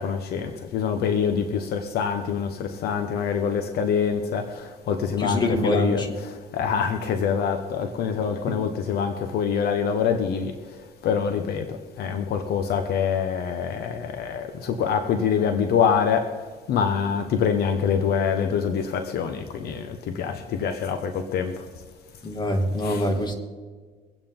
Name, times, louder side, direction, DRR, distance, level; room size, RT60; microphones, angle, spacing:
voice 1, 0.0-10.5 11.0-16.4 16.7-21.6 22.8-23.0, left 7 dB, 70° left, 1.1 m, -25 dB
voice 2, 5.2-6.1 22.2-23.3, left 1 dB, 25° left, 2.3 m, -24 dB
23.5 x 9.0 x 3.9 m
cardioid pair, 110°, 17 cm